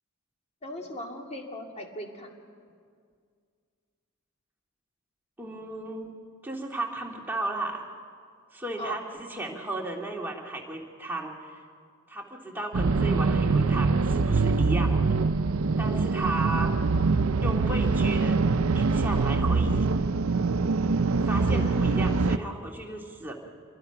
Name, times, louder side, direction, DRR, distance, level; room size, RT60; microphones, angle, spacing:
voice 1, 0.6-2.4 8.8-9.0 21.5-21.7, left 1 dB, 30° left, 2 dB, 2.4 m, -38 dB
voice 2, 5.4-6.1 6.4-7.8 8.5-11.6 12.1-15.2 15.8-16.7 17.4-18.4 18.7-19.9 21.2-23.3, right 2 dB, 10° right, 0 dB, 2.1 m, -34 dB
sound 1, 12.7-22.4, right 4 dB, 65° right, 0.6 m, -24 dB
27.0 x 21.5 x 5.9 m, 2.2 s
head